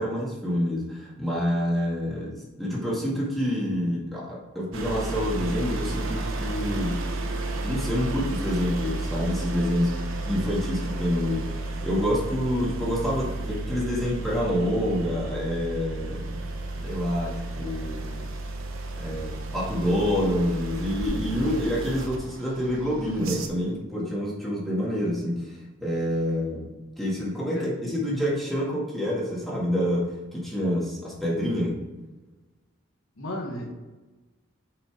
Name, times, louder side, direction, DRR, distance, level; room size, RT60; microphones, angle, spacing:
voice 1, 0.0-7.0 7.6-16.4 16.8-18.3 19.0-25.6 25.8-26.7 27.0-31.8, equal, ahead, -6 dB, 1.8 m, -27 dB
sound 1, 4.7-23.5, right 2 dB, 80° right, 0.8 m, -32 dB
voice 2, 21.4-21.7 27.5-27.7 33.2-33.7, left 1 dB, 80° left, -1 dB, 1.2 m, -34 dB
5.5 x 5.3 x 4.7 m, 1.2 s
head